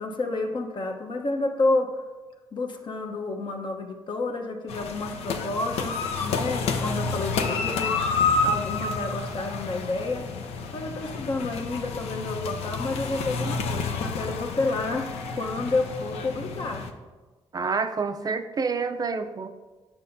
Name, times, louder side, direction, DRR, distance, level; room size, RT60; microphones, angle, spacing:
voice 1, 0.0-1.9 2.5-8.0 8.4-10.3 10.7-15.1 15.4-16.8, left 2 dB, 45° left, 3 dB, 1.0 m, -30 dB
sound 1, 4.7-16.9, left 4 dB, 75° left, 0.6 m, -29 dB
voice 2, 17.5-19.5, right 4 dB, 35° right, 8 dB, 0.5 m, -28 dB
8.3 x 5.9 x 2.7 m, 1.3 s
supercardioid pair, 65°, 11 cm